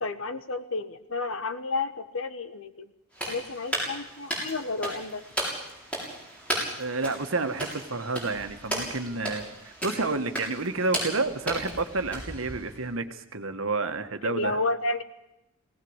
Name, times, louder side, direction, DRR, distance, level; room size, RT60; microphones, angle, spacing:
voice 1, 0.0-2.9 3.3-5.2 14.2-15.0, left 3 dB, 70° left, 11 dB, 1.3 m, -31 dB
sound 1, 3.1-12.9, right 1 dB, 5° left, 7.2 m, -35 dB
voice 2, 6.8-14.6, right 3 dB, 70° right, 8 dB, 1.6 m, -30 dB
19.0 x 18.5 x 8.1 m, 0.90 s
head